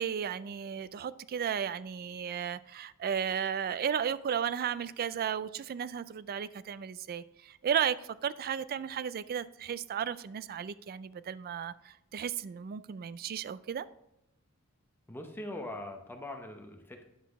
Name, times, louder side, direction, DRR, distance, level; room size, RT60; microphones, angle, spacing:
voice 1, 0.0-8.0 8.2-13.9, right 8 dB, 45° right, 16 dB, 0.3 m, -34 dB
voice 2, 15.1-17.0, left 1 dB, 10° left, 3 dB, 0.7 m, -42 dB
9.5 x 5.8 x 3.5 m, 0.85 s
head